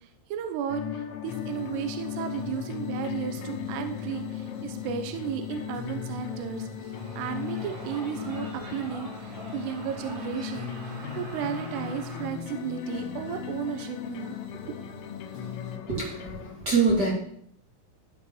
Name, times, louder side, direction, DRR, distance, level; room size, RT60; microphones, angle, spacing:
voice 1, 0.0-14.4 14.7-14.8, right 8 dB, 80° right, 7 dB, 2.5 m, -34 dB
sound 1, 0.7-16.5, left 9 dB, 75° left, 3.2 m, -38 dB
sound 2, 1.3-15.8, left 6 dB, 60° left, 2.7 m, -42 dB
sound 3, 6.9-12.2, right 1 dB, 65° right, 7.2 m, -44 dB
voice 2, 15.8-17.1, right 4 dB, 40° right, -4 dB, 1.4 m, -25 dB
13.5 x 5.1 x 5.6 m, 0.67 s
omnidirectional pair, 5.9 m